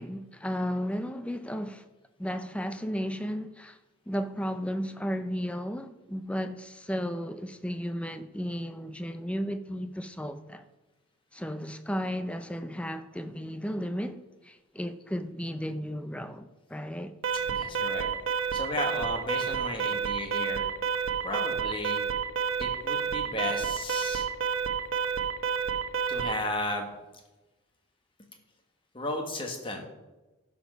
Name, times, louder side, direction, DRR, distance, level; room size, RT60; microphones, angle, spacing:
voice 1, 0.0-1.8 2.2-3.8 4.1-10.6 11.3-17.1, equal, 5° left, 0.5 m, -34 dB
Alarm, 17.2-26.4, right 6 dB, 65° right, 1.0 m, -29 dB
voice 2, 17.3-18.1 18.5-20.7 21.2-22.0 22.6-24.3 26.1-26.9 28.9-29.9, left 2 dB, 25° left, 1.4 m, -34 dB
11.5 x 6.2 x 5.5 m
head